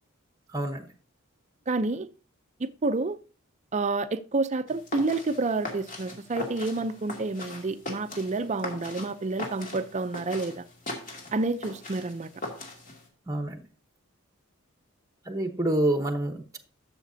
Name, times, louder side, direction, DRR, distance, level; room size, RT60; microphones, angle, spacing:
voice 1, 0.5-0.9 13.3-13.6 15.3-16.6, right 1 dB, 15° right, 0.9 m, -27 dB
voice 2, 1.7-2.1 2.6-3.2 3.7-10.6 11.3-12.3, right 3 dB, 35° right, 0.5 m, -29 dB
sound 1, 4.7-13.1, left 2 dB, 40° left, 2.3 m, -40 dB
12.5 x 7.1 x 2.7 m
head